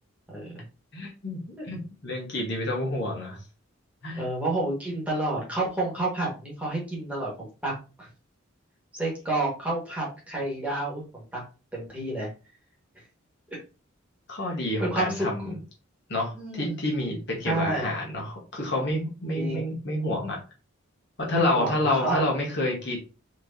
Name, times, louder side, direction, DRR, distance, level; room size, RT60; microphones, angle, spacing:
voice 1, 0.3-0.6 1.6-1.7 3.0-3.1 4.2-8.1 8.9-11.4 11.7-12.3 13.5-13.6 14.8-15.5 16.3-16.8 17.4-17.9 19.3-19.8 21.3-22.3, right 2 dB, 5° right, -4 dB, 1.6 m, -30 dB
voice 2, 0.9-3.4 4.0-4.3 14.3-15.6 16.1-20.4 21.2-23.0, left 1 dB, 55° left, -1 dB, 1.4 m, -29 dB
4.5 x 3.2 x 2.7 m, 0.33 s
head